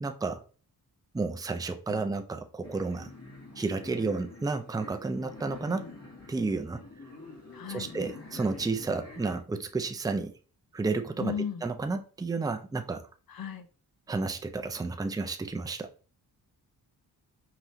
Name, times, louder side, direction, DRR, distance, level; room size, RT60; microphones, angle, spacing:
voice 1, 0.0-0.4 1.1-3.1 3.6-5.9 6.3-6.8 7.7-10.3 10.7-11.3 11.6-13.1 14.1-15.9, right 3 dB, 10° right, 0.5 m, -31 dB
sound 1, 2.6-9.4, left 3 dB, 40° left, 2.3 m, -47 dB
voice 2, 7.5-7.9 11.2-11.6 13.3-13.7, left 8 dB, 60° left, 0.8 m, -35 dB
5.0 x 3.0 x 2.7 m
cardioid pair, 70°, 40 cm